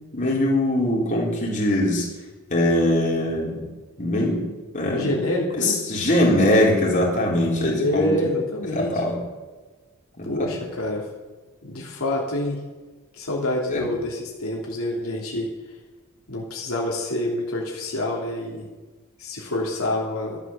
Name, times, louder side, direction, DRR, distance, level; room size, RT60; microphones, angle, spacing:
voice 1, 0.1-2.1 2.5-3.6 4.0-4.5 4.7-5.2 5.6-8.1 8.7-9.2 10.2-10.5 13.7-13.8, left 1 dB, 35° left, -3 dB, 4.1 m, -21 dB
voice 2, 4.9-5.8 7.8-9.0 10.3-11.0 11.6-12.6 13.1-15.5 16.3-18.7 19.2-20.4, left 1 dB, 75° left, -3 dB, 3.0 m, -27 dB
12.0 x 12.0 x 7.1 m, 1.3 s
head